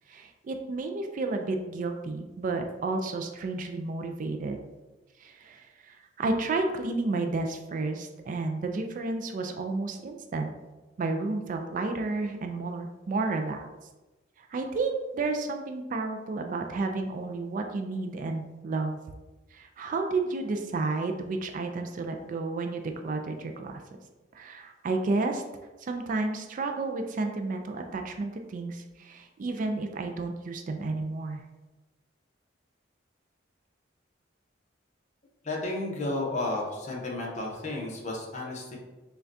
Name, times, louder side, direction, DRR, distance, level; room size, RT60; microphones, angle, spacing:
voice 1, 0.1-4.6 5.2-10.5 11.0-13.6 14.4-19.0 19.5-23.8 24.3-25.4 25.8-31.4, right 3 dB, 45° right, 5 dB, 0.3 m, -31 dB
voice 2, 35.4-38.8, left 2 dB, 40° left, -2 dB, 0.8 m, -32 dB
5.7 x 2.2 x 2.6 m, 1.1 s
head